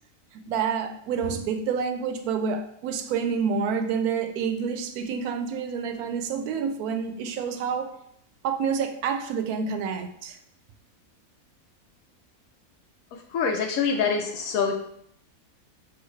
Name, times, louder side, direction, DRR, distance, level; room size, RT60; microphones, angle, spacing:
voice 1, 0.3-8.0 8.4-10.4, right 6 dB, 80° right, 1.1 m, -28 dB
voice 2, 13.3-14.7, left 6 dB, 75° left, 1.0 m, -25 dB
6.2 x 2.3 x 3.2 m
omnidirectional pair, 1.6 m